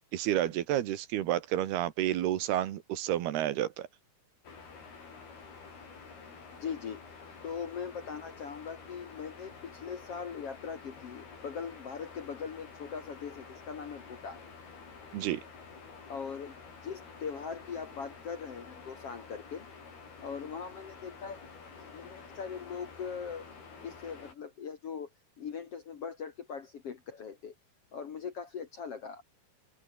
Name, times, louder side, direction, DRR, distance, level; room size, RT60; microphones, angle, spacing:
voice 1, 0.1-3.9 15.1-15.4, right 12 dB, 75° right, 3.4 m, -30 dB
sound 1, 4.4-24.3, left 5 dB, 70° left, 8.3 m, -50 dB
voice 2, 6.5-7.0 7.4-14.4 16.1-16.5 16.8-19.7 20.2-21.4 21.8-23.5 23.8-25.1 25.4-27.5 27.9-29.2, left 6 dB, 50° left, 1.9 m, -40 dB
open air
omnidirectional pair, 4.7 m